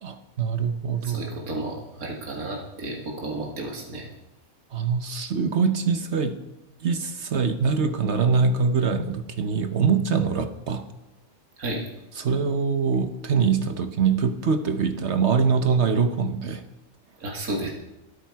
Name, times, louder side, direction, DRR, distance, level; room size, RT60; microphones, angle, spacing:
voice 1, 0.0-1.6 4.7-6.4 6.8-10.8 12.2-16.6, right 5 dB, 55° right, 8 dB, 1.2 m, -24 dB
voice 2, 1.0-4.1 11.6-11.9 17.2-17.7, right 2 dB, 80° right, 0 dB, 2.5 m, -32 dB
24.0 x 9.0 x 4.7 m, 0.94 s
omnidirectional pair, 1.5 m